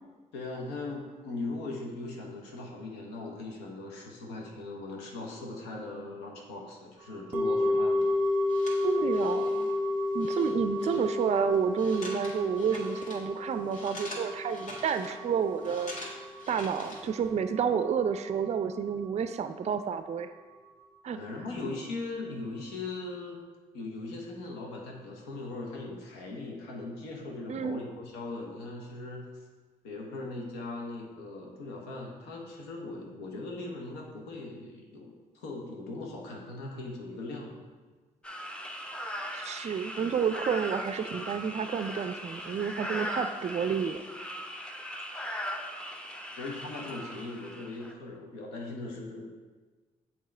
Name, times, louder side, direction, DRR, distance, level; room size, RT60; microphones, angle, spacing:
voice 1, 0.3-8.0 21.1-23.4 23.7-29.3 29.8-37.6 46.4-49.2, left 2 dB, 85° left, 0 dB, 0.9 m, -39 dB
sound 1, 7.3-17.6 17.9-18.0, left 2 dB, 10° right, 1.1 m, -31 dB
sound 2, 8.0-17.3, left 1 dB, 45° left, 1.8 m, -46 dB
voice 2, 8.8-9.7 10.1-15.9 16.5-20.3 21.0-21.2 27.5-27.8 39.3-44.3, right 7 dB, 40° right, 10 dB, 0.4 m, -30 dB
sound 3, 38.2-47.9, equal, 5° left, 0.7 m, -39 dB
7.4 x 2.9 x 4.3 m, 1.4 s
hypercardioid pair, 45°, 17 cm